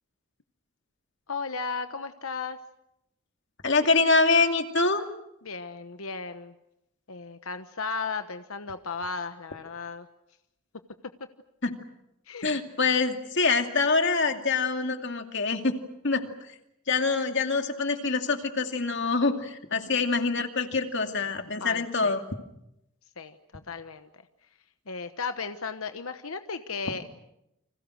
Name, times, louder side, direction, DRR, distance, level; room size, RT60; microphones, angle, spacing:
voice 1, 1.3-2.6 5.4-6.5 7.1-10.1 12.3-12.5 21.6-22.2 23.2-24.1 24.9-27.0, left 4 dB, 75° left, 9 dB, 1.1 m, -35 dB
voice 2, 3.6-5.0 11.6-11.7 12.4-15.7 16.0-16.2 16.9-22.2, left 4 dB, 55° left, 5 dB, 2.5 m, -25 dB
30.0 x 25.5 x 6.4 m, 0.84 s
head